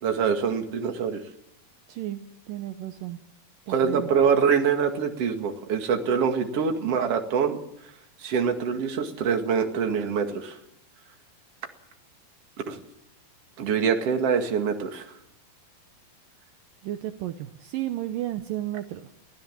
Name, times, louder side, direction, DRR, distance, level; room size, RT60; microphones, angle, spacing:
voice 1, 0.0-1.2 3.7-7.6 8.2-10.6 12.7-12.8 13.6-15.1, right 6 dB, 45° right, 4 dB, 2.7 m, -24 dB
voice 2, 1.9-2.2 2.5-3.2 3.7-4.1 16.8-19.1, right 13 dB, 75° right, 8 dB, 2.4 m, -33 dB
24.0 x 16.0 x 7.5 m, 0.81 s
omnidirectional pair, 4.3 m